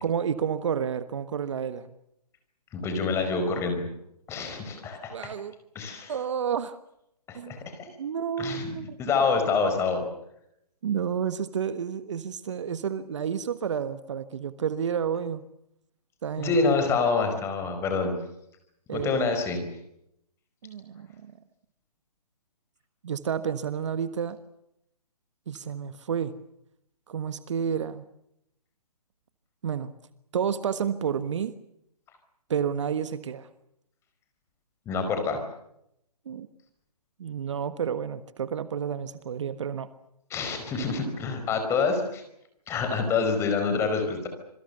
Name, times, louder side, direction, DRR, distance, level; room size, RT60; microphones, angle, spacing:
voice 1, 0.0-1.9 5.1-5.5 6.1-6.8 7.3-7.6 8.0-9.0 10.8-15.5 16.2-16.6 18.9-19.3 20.6-21.3 23.0-24.4 25.5-26.3 27.1-28.1 29.6-29.9 30.3-31.5 32.5-33.5 36.2-36.5 37.2-39.9, right 7 dB, 50° right, 13 dB, 1.4 m, -30 dB
voice 2, 2.7-3.9 4.3-5.2 5.7-6.1 7.3-7.9 8.4-10.0 16.4-18.1 18.9-19.6 34.8-35.4 40.3-42.2 42.7-44.3, left 4 dB, 15° left, 6 dB, 4.8 m, -27 dB
27.0 x 23.0 x 6.8 m, 0.77 s
hypercardioid pair, 150°, 20 cm